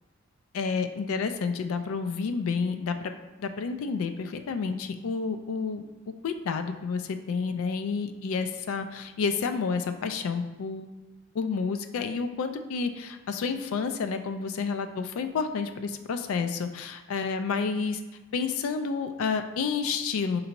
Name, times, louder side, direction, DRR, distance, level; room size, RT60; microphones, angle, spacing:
voice 1, 0.5-3.1 3.4-5.8 6.2-10.9 11.3-18.0 18.3-20.4, left 5 dB, 65° left, 8 dB, 0.3 m, -30 dB
4.2 x 2.6 x 2.9 m, 1.2 s
head